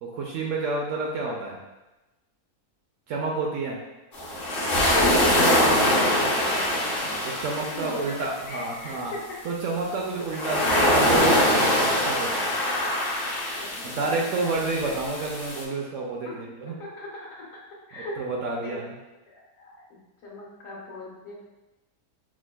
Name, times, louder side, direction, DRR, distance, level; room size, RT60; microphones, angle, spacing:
voice 1, 0.0-1.6 3.1-3.8 6.2-6.3 7.0-9.1 9.4-12.5 13.8-16.8 18.2-19.0, right 3 dB, 65° right, -1 dB, 0.8 m, -30 dB
sound 1, 4.1-8.2 10.3-15.6, left 1 dB, 50° left, 0.8 m, -23 dB
voice 2, 5.6-6.7 7.7-9.4 13.5-14.9 16.2-16.5 16.8-17.5 17.9-18.8 19.3-21.5, left 1 dB, 65° left, -5 dB, 1.3 m, -40 dB
6.0 x 2.2 x 2.2 m, 1.0 s
omnidirectional pair, 1.6 m